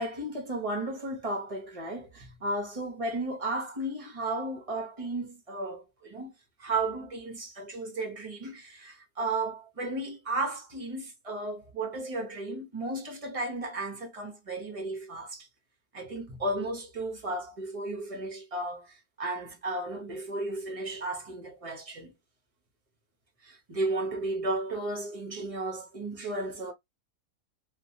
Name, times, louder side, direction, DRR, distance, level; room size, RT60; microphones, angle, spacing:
voice 1, 0.0-6.3 6.6-15.5 15.9-22.1 23.4-26.7, right 2 dB, 35° right, 0.6 m, -34 dB
2.9 x 2.2 x 2.6 m
omnidirectional pair, 1.6 m